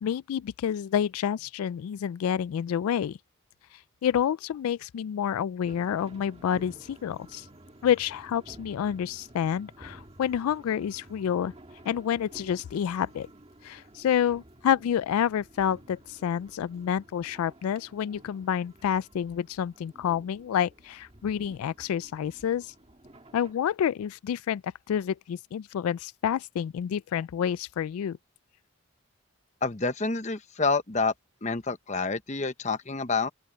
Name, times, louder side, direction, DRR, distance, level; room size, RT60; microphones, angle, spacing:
voice 1, 0.0-3.2 4.0-7.5 7.8-11.5 11.9-13.3 13.6-22.7 23.3-28.2, left 9 dB, 90° left, 0.3 m, -28 dB
sound 1, 5.6-23.5, right 1 dB, 30° right, 1.9 m, -52 dB
voice 2, 29.6-31.1 31.4-33.3, left 4 dB, 35° left, 0.9 m, -28 dB
open air
head